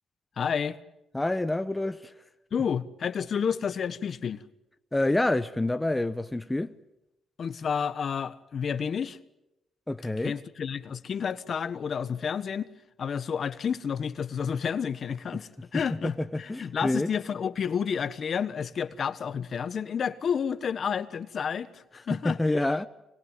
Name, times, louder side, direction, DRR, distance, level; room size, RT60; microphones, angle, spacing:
voice 1, 0.4-0.8 2.5-4.4 7.4-9.2 10.2-12.7 13.0-22.4, left 7 dB, 50° left, 1.3 m, -30 dB
voice 2, 1.1-2.1 4.9-6.7 9.9-10.3 15.7-17.1 22.2-22.9, left 2 dB, 10° left, 0.9 m, -27 dB
25.5 x 21.5 x 9.2 m
cardioid pair, 90°, 0 cm